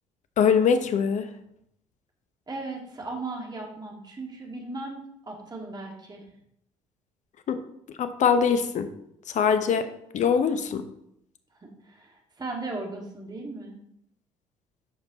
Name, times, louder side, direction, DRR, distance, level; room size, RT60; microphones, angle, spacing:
voice 1, 0.4-1.3 7.5-7.6 8.0-8.9 9.3-9.9 10.1-10.8, left 6 dB, 45° left, 9 dB, 0.9 m, -22 dB
voice 2, 2.5-6.2 11.6-13.8, right 2 dB, 25° right, 0 dB, 2.2 m, -37 dB
11.5 x 5.3 x 3.0 m, 0.75 s
figure-of-eight pair, 50°, 17 cm